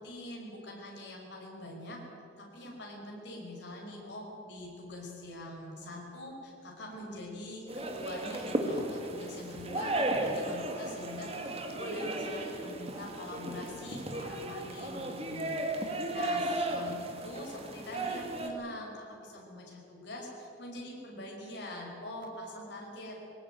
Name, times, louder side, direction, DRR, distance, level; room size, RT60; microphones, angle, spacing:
voice 1, 0.0-2.0 2.4-23.2, left 1 dB, 60° left, -1 dB, 5.7 m, -44 dB
sound 1, 7.7-18.5, right 1 dB, 30° right, 2.2 m, -35 dB
20.0 x 18.5 x 9.3 m, 2.7 s
head